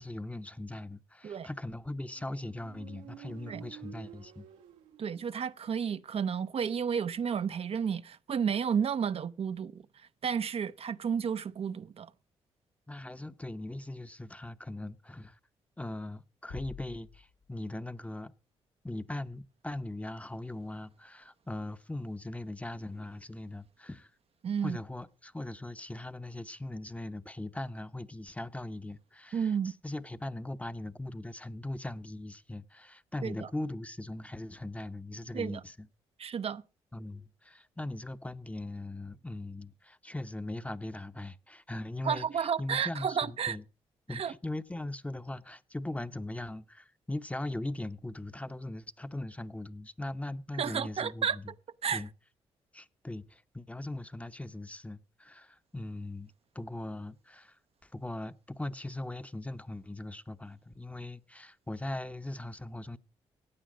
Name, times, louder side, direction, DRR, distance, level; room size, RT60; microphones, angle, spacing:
voice 1, 0.0-4.5 12.9-15.4 15.8-18.3 18.8-24.1 24.6-35.9 36.9-43.6 44.1-51.5 51.9-52.1 52.7-63.0, left 1 dB, 10° left, 0.8 m, -40 dB
Motorcycle, 1.9-5.6, right 11 dB, 90° right, 1.4 m, -51 dB
voice 2, 5.0-9.8 10.2-12.1 24.4-24.8 29.3-29.7 33.2-33.5 35.3-35.6 36.2-36.6 42.0-43.6 44.1-44.3 50.6-51.4 51.8-52.0, right 7 dB, 50° right, 0.6 m, -32 dB
sound 1, 16.5-18.1, left 5 dB, 80° left, 1.8 m, -48 dB
15.5 x 9.1 x 5.0 m
supercardioid pair, 50°, 12 cm